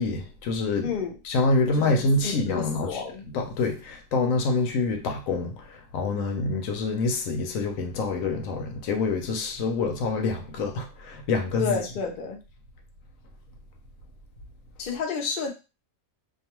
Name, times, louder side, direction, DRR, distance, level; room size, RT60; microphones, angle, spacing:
voice 1, 0.0-0.9 1.2-3.0 3.3-11.8, left 3 dB, 75° left, 1.0 m, -26 dB
voice 2, 0.8-1.1 1.8-3.3 11.6-12.4 14.8-15.5, left 6 dB, 50° left, 0.6 m, -30 dB
2.5 x 2.3 x 2.9 m
omnidirectional pair, 1.4 m